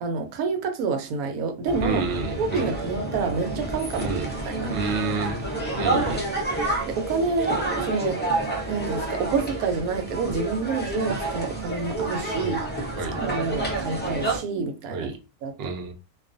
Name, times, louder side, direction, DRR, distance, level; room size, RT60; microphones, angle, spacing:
voice 1, 0.0-2.0 2.4-4.1 4.5-4.7 6.9-8.2 8.7-12.6 13.2-15.1 15.4-15.7, right 4 dB, 85° right, 1.1 m, -28 dB
sound 1, 1.6-14.4, right 2 dB, 15° left, 0.4 m, -29 dB
voice 2, 1.8-2.7 4.0-4.3 4.7-5.4 5.8-6.3 12.4-12.6 13.0-13.2 14.9-15.2 15.6-15.9, right 4 dB, 60° right, 0.7 m, -29 dB
2.4 x 2.3 x 2.5 m
omnidirectional pair, 1.5 m